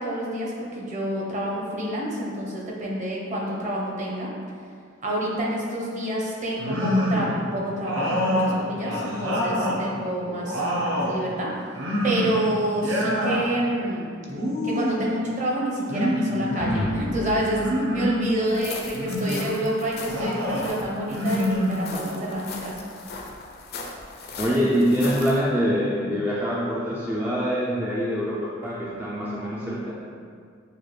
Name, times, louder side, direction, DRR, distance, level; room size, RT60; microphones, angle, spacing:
voice 1, 0.0-4.3 5.0-14.1 14.6-22.8, right 1 dB, 35° right, -3 dB, 0.8 m, -28 dB
sound 1, 6.6-7.4 7.8-9.8 10.2-11.2 11.7-12.4 12.7-13.4 14.3-15.1 15.9-16.8 17.5-18.3 18.9-19.5 20.1-20.7 21.1-22.2, equal, 65° right, 0.8 m, -26 dB
sound 2, 16.6-19.1, left 1 dB, 90° left, 0.7 m, -35 dB
sound 3, 18.5-25.4, left 4 dB, 50° left, 0.5 m, -38 dB
voice 2, 24.4-29.9, equal, 10° right, -6 dB, 0.3 m, -24 dB
6.7 x 2.3 x 3.1 m, 2.2 s
head